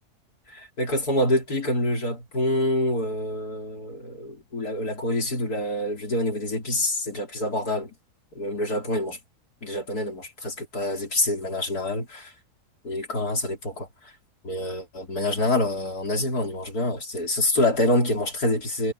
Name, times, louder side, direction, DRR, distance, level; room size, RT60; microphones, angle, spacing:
voice 1, 0.5-7.9 8.3-9.2 9.6-12.3 12.8-13.9 14.4-18.9, left 1 dB, 70° left, 4.7 m, -26 dB
omnidirectional pair, 1.7 m